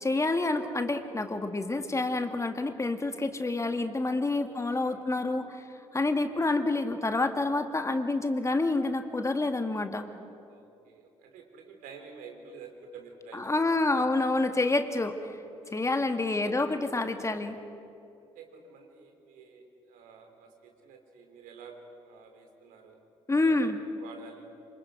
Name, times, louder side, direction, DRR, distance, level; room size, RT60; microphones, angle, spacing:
voice 1, 0.0-5.6 5.9-10.1 13.3-15.4 15.7-17.6 23.3-23.8, left 2 dB, 20° left, 7 dB, 1.9 m, -28 dB
voice 2, 4.4-5.0 6.2-6.4 10.5-13.6 14.0-14.2 15.6-15.9 16.2-17.4 18.2-23.0 23.4-23.6 24.0-24.5, right 5 dB, 60° right, 4 dB, 3.5 m, -50 dB
26.5 x 26.0 x 5.1 m, 2.6 s
figure-of-eight pair, 45°, 15 cm